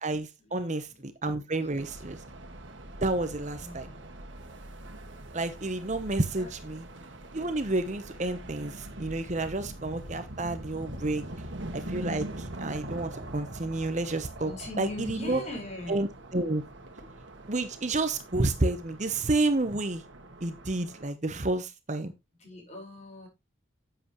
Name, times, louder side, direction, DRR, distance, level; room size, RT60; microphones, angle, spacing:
voice 1, 0.0-2.2 3.0-3.9 5.3-6.9 7.3-11.3 11.7-14.5 14.8-15.4 15.9-16.6 17.5-20.0 20.4-22.1, right 2 dB, 40° right, 0.9 m, -30 dB
sound 1, 1.8-21.1, right 1 dB, 70° right, 1.8 m, -43 dB
voice 2, 3.6-4.1 6.4-6.5 14.4-16.0 22.4-23.3, left 2 dB, 35° left, 4.8 m, -40 dB
10.0 x 7.9 x 3.1 m
head